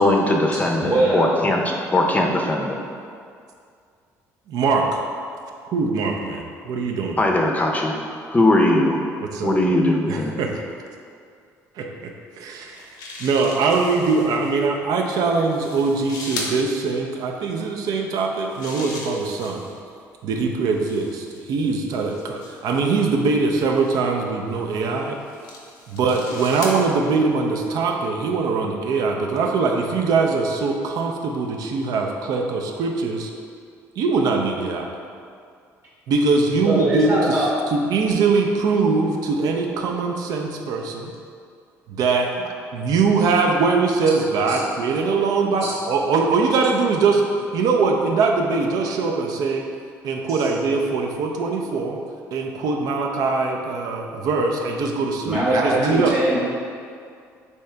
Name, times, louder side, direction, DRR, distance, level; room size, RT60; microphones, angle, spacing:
voice 1, 0.0-1.6 1.9-2.8 7.2-8.0 8.3-9.0 9.4-10.3, left 1 dB, 20° left, 1 dB, 0.5 m, -19 dB
voice 2, 0.5-1.3 36.6-37.5 44.5-44.6 45.6-45.7 50.3-50.5 55.3-56.4, right 1 dB, 40° right, -6 dB, 0.9 m, -22 dB
voice 3, 4.5-5.0 5.7-7.2 9.2-9.7 10.1-10.5 11.8-12.1 12.4-12.8 13.2-19.6 20.2-25.2 25.9-33.3 34.0-35.0 36.1-41.1 41.9-42.3 42.7-47.2 47.5-49.6 50.0-52.0 52.3-56.1, right 4 dB, 65° right, 2 dB, 0.4 m, -22 dB
sound 1, 12.5-14.5 15.3-16.6 18.2-19.8 20.7-22.8 23.6-24.0 24.8-26.8, left 2 dB, 75° left, 0.6 m, -38 dB
3.4 x 2.8 x 3.2 m, 2.3 s
supercardioid pair, 70°, 7 cm